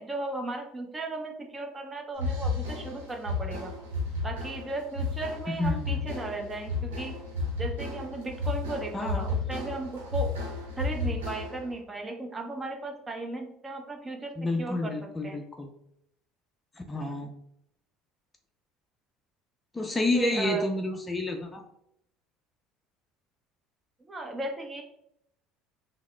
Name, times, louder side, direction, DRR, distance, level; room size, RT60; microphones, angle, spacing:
voice 1, 0.0-3.7 4.2-7.1 7.6-10.3 10.8-14.3 14.6-14.9 15.2-15.4 20.1-20.7 24.0-24.8, right 2 dB, 25° right, 3 dB, 0.7 m, -36 dB
sound 1, 2.1-11.7, left 2 dB, 90° right, 0.8 m, -33 dB
voice 2, 5.5-6.0 8.9-9.2 14.4-15.7 16.9-17.3 19.7-21.6, left 2 dB, 20° left, 4 dB, 0.5 m, -29 dB
3.5 x 2.0 x 3.2 m, 0.76 s
hypercardioid pair, 70°, 0 cm